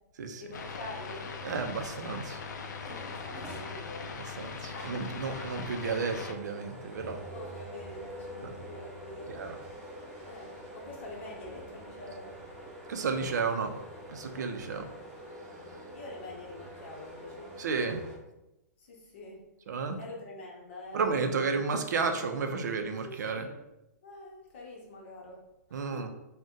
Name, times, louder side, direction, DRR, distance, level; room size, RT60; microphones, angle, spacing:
voice 1, 0.3-1.4 2.9-5.1 7.3-9.4 10.2-12.3 15.5-17.6 18.8-19.4 20.0-21.7 23.0-23.6 24.0-25.4 25.7-26.1, left 2 dB, 40° left, -2 dB, 0.7 m, -46 dB
sound 1, 0.5-6.3, left 5 dB, 80° left, 0.4 m, -40 dB
voice 2, 1.4-2.4 4.1-7.2 8.4-8.5 9.3-9.6 12.9-13.7 14.1-14.9 17.6-18.0 19.7-20.0 20.9-23.5 25.7-26.1, right 5 dB, 75° right, 6 dB, 0.4 m, -32 dB
sound 2, 2.8-18.2, equal, 10° right, 0.7 m, -46 dB
2.6 x 2.1 x 3.6 m, 0.93 s
hypercardioid pair, 175°, 9 cm